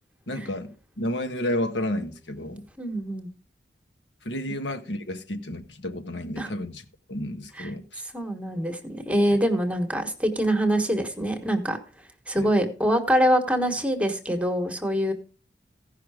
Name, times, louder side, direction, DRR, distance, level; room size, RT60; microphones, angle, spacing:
voice 1, 0.3-2.7 4.2-6.8 7.1-8.0 12.3-12.5, left 1 dB, 85° left, 1.4 m, -31 dB
voice 2, 2.8-3.3 6.4-6.5 7.6-7.7 8.1-11.8 12.3-15.1, equal, 10° right, 1.3 m, -24 dB
15.5 x 5.7 x 4.9 m
head